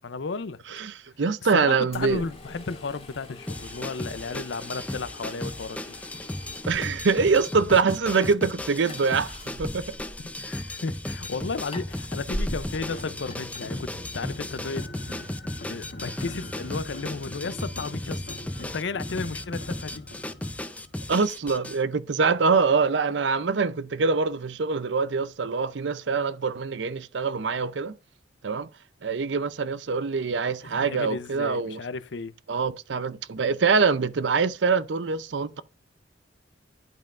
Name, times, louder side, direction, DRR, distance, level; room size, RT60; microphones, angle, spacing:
voice 1, 0.0-0.6 1.5-6.0 10.2-14.9 15.7-20.1 30.6-32.3, left 4 dB, 75° left, 0.6 m, -34 dB
voice 2, 0.7-2.2 6.7-9.9 21.1-28.0 28.4-28.7 29.0-31.8 32.5-35.6, right 5 dB, 75° right, 0.6 m, -24 dB
sound 1, 1.9-14.4, left 1 dB, 30° left, 2.0 m, -42 dB
sound 2, 3.5-21.8, left 1 dB, 10° left, 0.5 m, -35 dB
sound 3, 12.7-21.1, left 1 dB, 55° left, 1.2 m, -42 dB
11.0 x 5.3 x 2.5 m
head